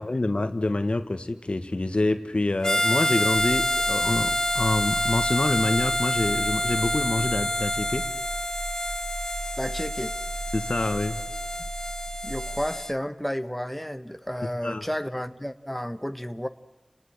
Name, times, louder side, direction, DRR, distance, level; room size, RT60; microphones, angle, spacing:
voice 1, 0.0-8.1 10.5-11.2 14.6-14.8, left 2 dB, 65° left, 9 dB, 1.6 m, -26 dB
Harmonica, 2.6-12.9, left 1 dB, 25° left, 0.8 m, -27 dB
sound 1, 3.3-12.7, right 3 dB, 55° right, 0.9 m, -38 dB
voice 2, 9.6-10.2 12.2-16.5, equal, 5° left, 10 dB, 1.1 m, -32 dB
30.0 x 19.5 x 8.6 m, 1.1 s
wide cardioid pair, 45°, 2 cm